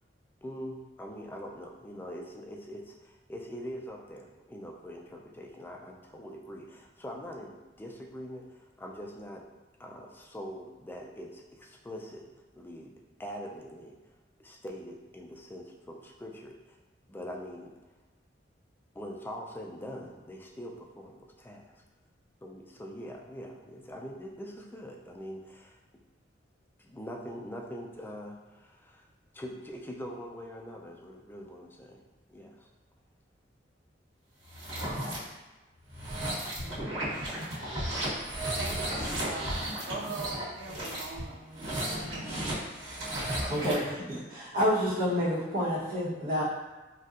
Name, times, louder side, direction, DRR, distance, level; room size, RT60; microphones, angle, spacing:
voice 1, 0.4-9.5 9.8-12.2 12.5-12.9 13.2-14.0 14.4-16.8 17.1-17.7 18.9-21.7 22.4-25.8 26.8-29.1 29.3-32.0 32.3-32.7, equal, 10° left, 0 dB, 0.3 m, -43 dB
sound 1, 34.4-35.2 35.9-43.9, right 1 dB, 90° right, 1.2 m, -34 dB
voice 2, 38.6-41.4 41.7-42.6, right 4 dB, 65° right, 1 dB, 0.4 m, -42 dB
voice 3, 43.5-46.4, equal, 50° right, -8 dB, 1.0 m, -29 dB
4.0 x 2.2 x 2.4 m, 1.2 s
head